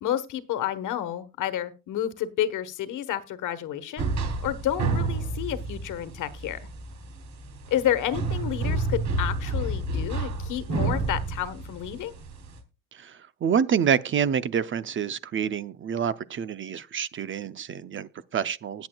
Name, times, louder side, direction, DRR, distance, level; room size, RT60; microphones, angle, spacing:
voice 1, 0.0-4.1 4.4-6.6 7.7-12.1, left 11 dB, 60° left, 1.3 m, -30 dB
sound 1, 4.0-12.6, right 3 dB, 50° right, 3.4 m, -30 dB
voice 2, 13.0-18.9, right 7 dB, 35° right, 0.6 m, -27 dB
20.0 x 7.9 x 2.3 m
cardioid pair, 115°, 35 cm